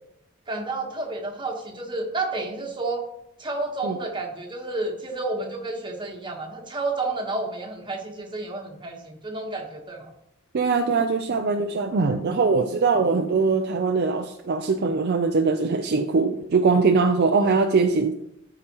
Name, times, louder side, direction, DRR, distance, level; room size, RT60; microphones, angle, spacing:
voice 1, 0.5-3.0 3.4-10.1, right 2 dB, 20° right, 1 dB, 1.2 m, -30 dB
voice 2, 10.5-18.1, right 4 dB, 50° right, 6 dB, 0.4 m, -22 dB
13.0 x 4.9 x 3.0 m, 0.79 s
head